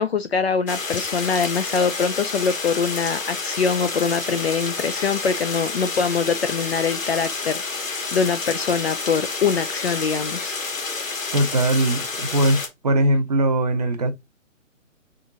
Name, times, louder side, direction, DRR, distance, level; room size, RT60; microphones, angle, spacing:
voice 1, 0.0-10.6, left 5 dB, 50° left, 0.6 m, -23 dB
sound 1, 0.7-12.7, left 4 dB, 75° left, 1.9 m, -29 dB
voice 2, 11.3-14.1, right 1 dB, 30° right, 0.7 m, -20 dB
3.8 x 3.6 x 3.9 m
hypercardioid pair, 155°, 40 cm